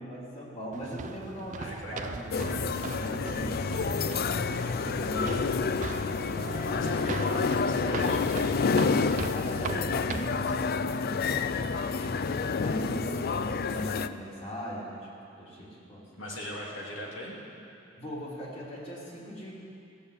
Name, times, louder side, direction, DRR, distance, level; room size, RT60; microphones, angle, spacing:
voice 1, 0.0-2.5 3.0-6.4 7.3-7.5 7.8-8.0 9.3-15.1 15.4-16.0 18.0-19.5, equal, 35° left, -5 dB, 2.9 m, -40 dB
sound 1, 0.7-10.5, right 4 dB, 40° right, 0.4 m, -39 dB
voice 2, 1.6-2.2 6.6-8.7 13.3-13.5 16.2-17.3, equal, 80° left, -4 dB, 2.7 m, -40 dB
sound 2, 2.3-14.1, left 5 dB, 50° left, 0.4 m, -29 dB
17.0 x 7.1 x 8.3 m, 2.7 s
head